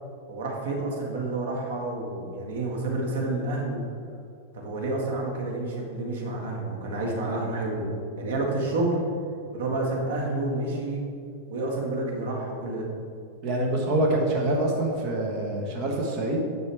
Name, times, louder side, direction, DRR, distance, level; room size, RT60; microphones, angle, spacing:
voice 1, 0.3-3.8 4.5-7.9 8.2-9.0 9.5-11.0 11.5-12.9, right 2 dB, 85° right, 0 dB, 1.9 m, -29 dB
voice 2, 13.4-16.4, right 1 dB, 40° right, 0 dB, 1.4 m, -25 dB
10.0 x 6.3 x 3.5 m, 2.3 s
supercardioid pair, 155°, 0 cm